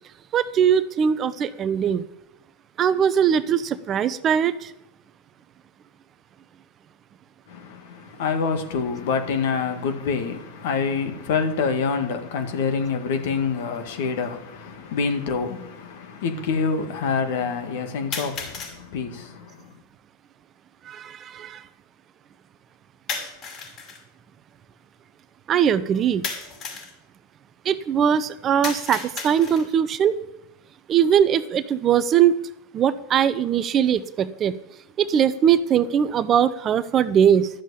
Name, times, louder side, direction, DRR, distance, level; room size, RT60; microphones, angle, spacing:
voice 1, 0.3-2.0 2.8-4.7 20.9-21.6 25.5-26.2 27.6-30.2 30.9-32.3 32.7-34.5 35.0-37.5, right 8 dB, 35° right, 0.8 m, -21 dB
voice 2, 7.5-19.7, left 5 dB, 65° left, 2.0 m, -26 dB
sound 1, 13.8-13.9 14.8-14.9 18.1-18.8 23.1-24.0 26.2-26.9 28.6-29.8, left 5 dB, 40° left, 5.4 m, -33 dB
12.0 x 7.5 x 8.6 m
hypercardioid pair, 105°, 0 cm